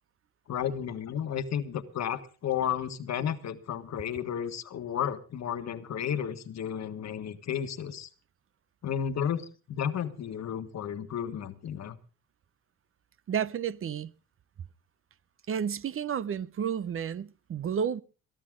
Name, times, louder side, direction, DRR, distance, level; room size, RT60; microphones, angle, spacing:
voice 1, 0.5-8.1 8.8-12.0, left 8 dB, 60° left, 1.6 m, -33 dB
voice 2, 13.3-14.1 15.5-18.0, right 8 dB, 45° right, 0.7 m, -31 dB
22.0 x 12.0 x 3.7 m
cardioid pair, 90°, 30 cm